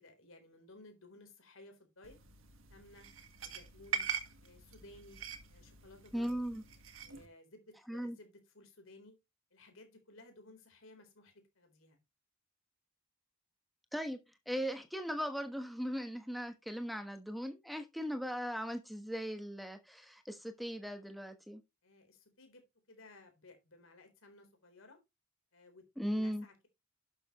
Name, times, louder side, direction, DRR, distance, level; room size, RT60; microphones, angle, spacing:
voice 1, 0.0-2.2 2.7-3.1 3.4-4.1 4.4-5.2 5.5-6.3 7.0-9.2 9.5-12.0 21.8-25.0 25.5-26.7, left 2 dB, 65° left, 4.0 m, -58 dB
sound 1, 2.0-7.3, right 7 dB, 65° right, 1.6 m, -43 dB
voice 2, 6.1-6.6 7.9-8.2 13.9-14.2 14.5-21.6 26.0-26.4, equal, ahead, 1.2 m, -38 dB
12.0 x 6.8 x 3.1 m
head